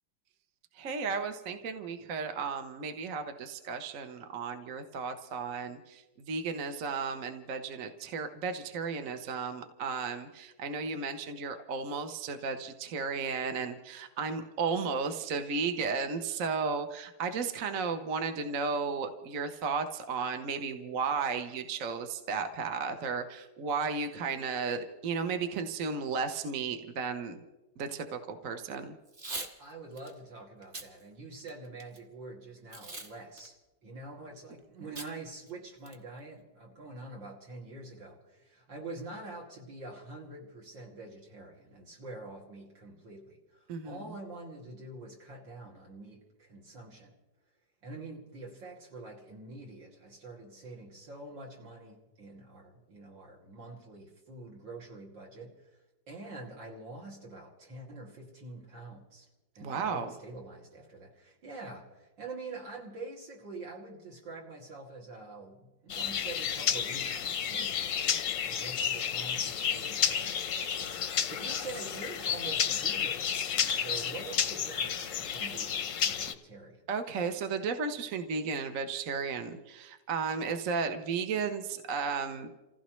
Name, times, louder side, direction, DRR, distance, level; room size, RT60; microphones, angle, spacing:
voice 1, 0.8-27.4 27.8-29.0 43.7-44.0 59.6-60.1 76.9-82.5, right 5 dB, 50° right, 7 dB, 1.1 m, -34 dB
Packing tape duct tape / Tearing, 29.1-29.5 30.0-30.1 30.6-30.9 31.4-32.0 32.7-33.1 33.4-33.5 35.0-35.1 35.5-35.6 35.9-36.2, right 2 dB, 30° right, 1.3 m, -40 dB
voice 2, 29.6-33.6 33.8-47.1 47.8-55.5 56.1-59.3 59.6-68.2 68.4-73.2 73.5-76.8, right 3 dB, 70° right, -1 dB, 3.2 m, -46 dB
sound 1, 65.9-76.3, left 8 dB, 60° left, 0.9 m, -31 dB
29.0 x 15.5 x 3.1 m, 1.1 s
omnidirectional pair, 2.1 m